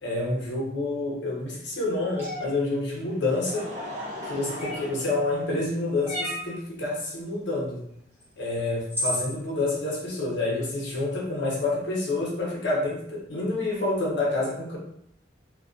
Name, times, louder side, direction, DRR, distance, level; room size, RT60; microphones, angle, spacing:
voice 1, 0.0-3.7 4.2-7.8 8.4-14.8, left 2 dB, 65° left, -3 dB, 0.7 m, -28 dB
sound 1, 2.2-2.5 4.6-5.0 6.1-6.5 8.2-8.3 8.9-9.3, equal, 10° right, 0.8 m, -31 dB
Laughter, 3.0-6.0 6.8-6.9 8.4-8.5, left 1 dB, 35° right, 0.5 m, -39 dB
2.4 x 2.3 x 2.4 m, 0.72 s
head